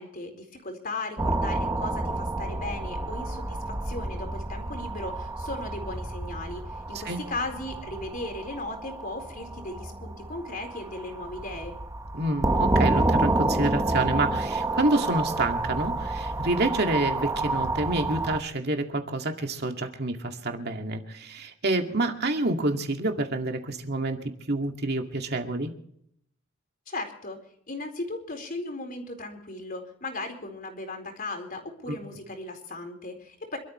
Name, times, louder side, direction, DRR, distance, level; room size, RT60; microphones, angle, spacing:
voice 1, 0.0-11.8 26.9-27.4 27.7-33.6, left 2 dB, 45° left, 4 dB, 4.3 m, -37 dB
sound 1, 1.2-18.4, right 2 dB, 15° right, 1.1 m, -29 dB
voice 2, 12.1-24.2 24.5-25.7 31.9-32.0, right 2 dB, 50° right, 4 dB, 2.2 m, -28 dB
27.5 x 13.0 x 3.2 m, 0.69 s
head